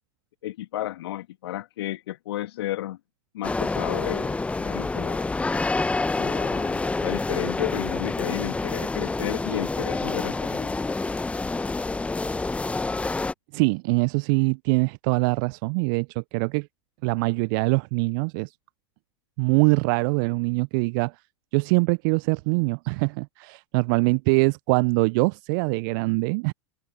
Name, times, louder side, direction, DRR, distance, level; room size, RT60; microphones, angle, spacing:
voice 1, 0.4-3.0 3.3-5.4 6.2-10.8, left 14 dB, 70° left, 1.9 m, -32 dB
sound 1, 3.4-13.3, left 3 dB, 10° left, 0.8 m, -27 dB
voice 2, 13.5-16.7 17.0-18.5 19.4-21.2 21.5-26.5, right 30 dB, 50° right, 0.5 m, -23 dB
hypercardioid pair, 90°, 14 cm